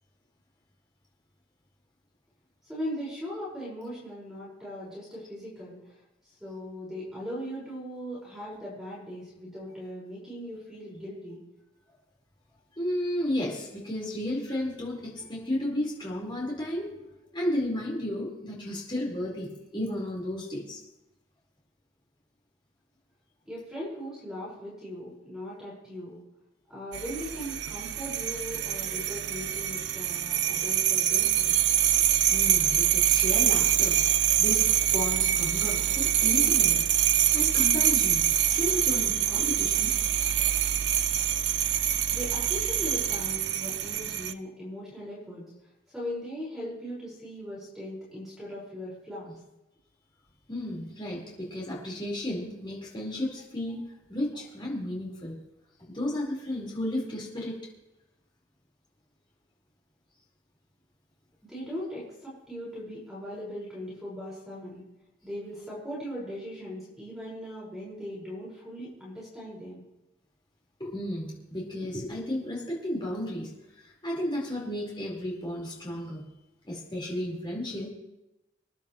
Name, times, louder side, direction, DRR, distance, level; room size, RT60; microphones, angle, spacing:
voice 1, 2.7-6.0 6.4-11.4 23.5-26.2 26.7-31.7 42.1-45.4 45.9-49.3 61.5-64.8 65.2-69.8, equal, ahead, -8 dB, 5.4 m, -39 dB
voice 2, 12.8-17.0 17.3-20.8 32.3-34.0 34.4-34.7 34.9-36.9 37.3-38.2 38.5-39.9 50.5-53.8 54.1-55.4 55.9-57.6 70.8-73.5 73.7-76.2 76.6-77.9, left 1 dB, 25° left, -4 dB, 4.6 m, -33 dB
sound 1, 26.9-44.3, right 11 dB, 60° right, 0.5 m, -25 dB
27.0 x 11.0 x 3.2 m, 0.95 s
head